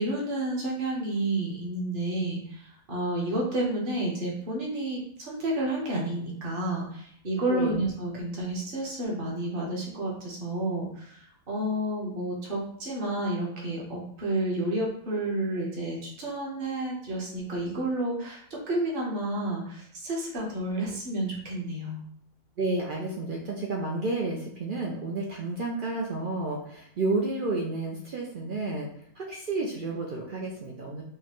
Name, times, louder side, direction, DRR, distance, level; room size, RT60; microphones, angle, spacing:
voice 1, 0.0-22.0, right 1 dB, 40° right, -3 dB, 1.1 m, -30 dB
voice 2, 7.5-7.9 22.6-28.9 29.2-31.0, right 2 dB, 75° right, -2 dB, 0.4 m, -31 dB
4.7 x 2.2 x 2.9 m, 0.66 s
omnidirectional pair, 1.6 m